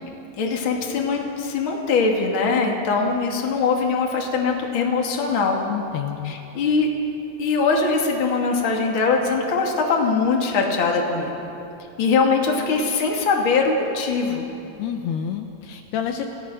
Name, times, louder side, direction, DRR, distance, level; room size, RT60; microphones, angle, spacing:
voice 1, 0.4-5.6 6.2-6.9 7.4-11.3 12.0-14.4, left 4 dB, 35° left, 0 dB, 2.5 m, -22 dB
voice 2, 5.7-6.3 14.8-16.3, left 9 dB, 75° left, 4 dB, 2.8 m, -28 dB
29.0 x 18.0 x 6.3 m, 2.8 s
omnidirectional pair, 5.0 m